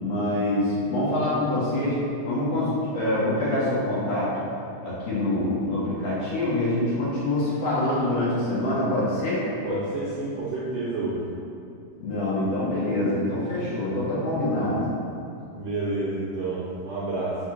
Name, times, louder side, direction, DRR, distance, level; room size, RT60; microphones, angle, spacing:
voice 1, 0.0-4.4 4.8-9.5 12.0-14.9, left 1 dB, 55° left, -9 dB, 2.5 m, -25 dB
voice 2, 9.6-11.2 15.5-17.4, right 2 dB, 70° right, -7 dB, 1.6 m, -29 dB
5.2 x 4.6 x 5.9 m, 2.7 s
omnidirectional pair, 3.8 m